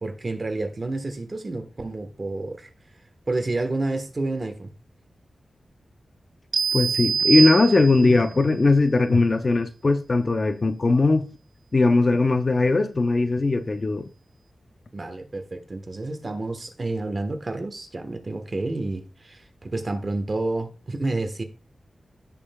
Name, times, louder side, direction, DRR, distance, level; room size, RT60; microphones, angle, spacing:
voice 1, 0.0-2.7 3.3-4.7 14.9-21.4, right 2 dB, 35° right, 1.3 m, -29 dB
sound 1, 6.5-8.3, right 6 dB, 80° right, 0.6 m, -24 dB
voice 2, 6.7-11.3 11.7-14.1, left 3 dB, 35° left, 0.7 m, -19 dB
16.5 x 5.5 x 2.3 m
wide cardioid pair, 110°, 0 cm